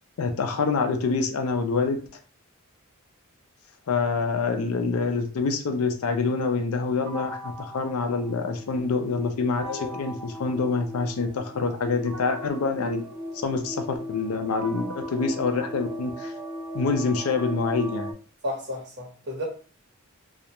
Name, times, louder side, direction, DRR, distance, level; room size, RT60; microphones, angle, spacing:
voice 1, 0.2-2.0 3.9-13.0 13.4-16.3 16.7-18.1, left 4 dB, 85° left, 6 dB, 0.5 m, -26 dB
sound 1, 7.1-8.9 9.6-11.4 12.1-16.3, equal, 85° right, 0.6 m, -42 dB
sound 2, 8.2-18.1, equal, 20° right, 0.4 m, -38 dB
voice 2, 9.6-10.0 18.4-19.4, left 1 dB, 50° right, -1 dB, 1.0 m, -33 dB
2.3 x 2.1 x 2.9 m, 0.39 s
head